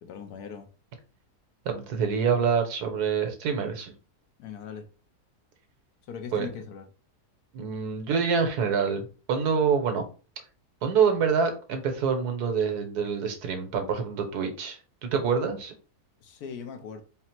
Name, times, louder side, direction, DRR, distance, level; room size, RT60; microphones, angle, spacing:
voice 1, 0.0-0.7 4.4-4.9 6.1-6.9 16.2-17.0, left 6 dB, 75° left, 1.2 m, -39 dB
voice 2, 1.6-3.9 6.3-6.5 7.5-10.0 10.8-15.7, right 6 dB, 75° right, 1.3 m, -26 dB
4.0 x 2.0 x 4.4 m
omnidirectional pair, 1.7 m